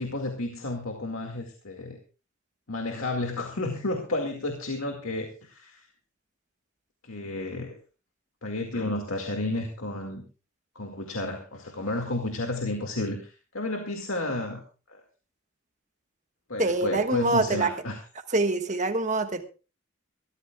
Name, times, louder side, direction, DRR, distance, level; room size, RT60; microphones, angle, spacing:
voice 1, 0.0-2.0 2.7-5.9 7.0-7.7 8.4-10.2 10.8-14.6 14.9-15.0 16.5-18.0, left 2 dB, 90° left, 3 dB, 2.1 m, -31 dB
voice 2, 16.6-17.7 18.3-19.4, right 3 dB, 35° right, 7 dB, 1.4 m, -25 dB
23.5 x 14.0 x 2.4 m, 0.34 s
head